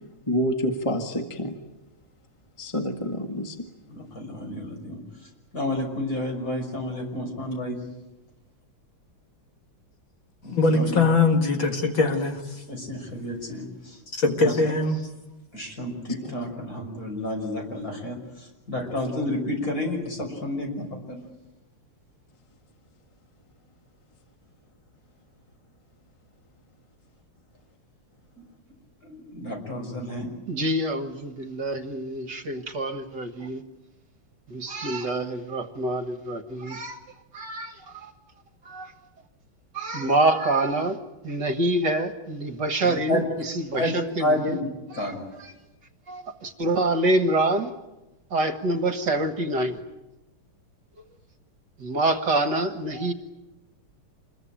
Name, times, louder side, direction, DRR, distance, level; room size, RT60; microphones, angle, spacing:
voice 1, 0.3-1.6 2.6-3.6, equal, 15° left, 1.5 m, -27 dB
voice 2, 3.9-5.0 5.5-7.8 10.4-11.0 12.7-14.0 14.4-14.5 15.5-21.2 29.0-30.3 43.1-43.2 43.7-43.9 44.2-44.7 45.0-45.2, left 1 dB, 40° left, 6.4 m, -30 dB
voice 3, 10.5-12.6 14.1-15.1 18.8-18.9, left 3 dB, 60° left, 2.6 m, -22 dB
voice 4, 30.5-33.6 34.5-37.0 37.3-38.1 38.7-38.9 39.7-41.0 41.2-44.6 44.9-45.1 45.4-45.5 46.1-47.7 48.3-49.8 51.8-53.1, right 2 dB, 55° right, 2.0 m, -26 dB
27.5 x 22.0 x 8.9 m
omnidirectional pair, 2.4 m